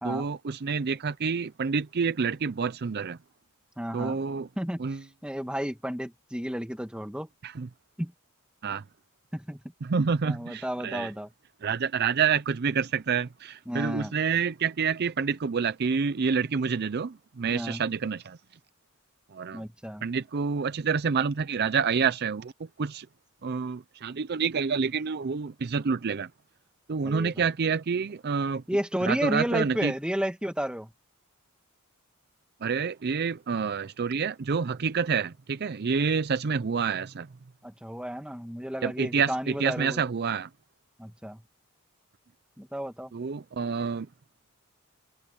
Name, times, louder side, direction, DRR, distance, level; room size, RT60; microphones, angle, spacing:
voice 1, 0.0-3.2 3.9-4.5 4.8-5.0 7.4-7.7 8.6-8.8 9.8-11.1 11.6-18.4 19.3-19.6 20.0-23.1 23.4-26.3 26.9-28.6 29.1-29.9 32.6-37.3 38.8-40.5 43.1-44.1, right 6 dB, 45° right, 0.5 m, -28 dB
voice 2, 3.8-4.2 4.6-7.3 8.0-8.1 9.3-9.6 10.2-11.3 13.7-14.1 17.5-17.8 19.5-20.1 27.0-27.3 28.7-30.9 37.6-40.0 41.0-41.4 42.6-43.1, equal, 5° right, 1.6 m, -32 dB
head